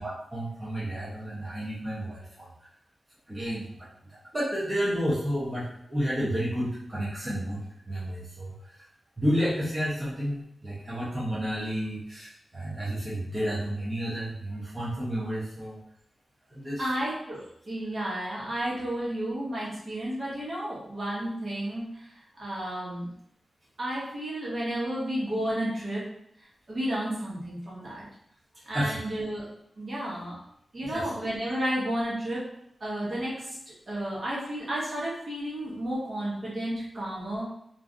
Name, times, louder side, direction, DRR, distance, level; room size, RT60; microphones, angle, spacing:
voice 1, 0.0-2.2 3.3-3.7 4.3-5.6 5.9-7.6 7.9-8.5 9.2-12.3 12.5-15.8 16.5-16.8 28.7-29.0 30.9-31.1, equal, 25° right, -9 dB, 0.9 m, -30 dB
voice 2, 16.8-21.9 22.4-23.1 23.8-26.0 26.7-28.0 28.7-29.5 29.8-30.4 30.7-32.4 32.8-33.6 33.9-37.5, right 1 dB, 55° right, -7 dB, 1.3 m, -32 dB
3.0 x 2.5 x 2.5 m, 0.72 s
wide cardioid pair, 95°, 0 cm